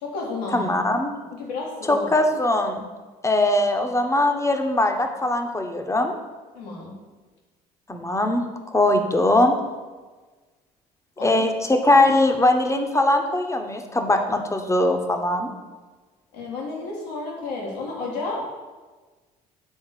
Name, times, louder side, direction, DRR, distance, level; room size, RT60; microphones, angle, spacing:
voice 1, 0.0-0.7 1.3-2.1 6.5-7.0 11.2-11.5 12.0-12.1 16.3-18.4, left 3 dB, 80° left, -2 dB, 1.8 m, -31 dB
voice 2, 0.5-1.1 1.9-2.8 3.2-6.2 7.9-8.4 8.7-9.5 11.2-15.5, left 2 dB, 15° left, 4 dB, 1.1 m, -21 dB
7.5 x 4.2 x 6.7 m, 1.3 s
hypercardioid pair, 55°, 21 cm